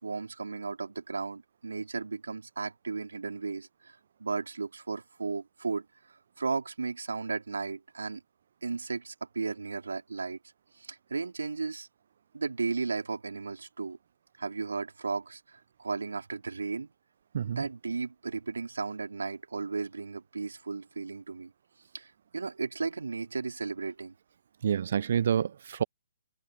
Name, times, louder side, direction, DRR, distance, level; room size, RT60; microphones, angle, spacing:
voice 1, 0.0-5.8 6.4-8.2 8.6-10.4 10.7-11.9 12.3-14.0 14.4-16.9 17.6-21.5 21.9-24.1, right 4 dB, 75° right, 4.4 m, -35 dB
voice 2, 24.6-25.8, right 8 dB, 55° right, 0.5 m, -28 dB
figure-of-eight pair, 130°, 0 cm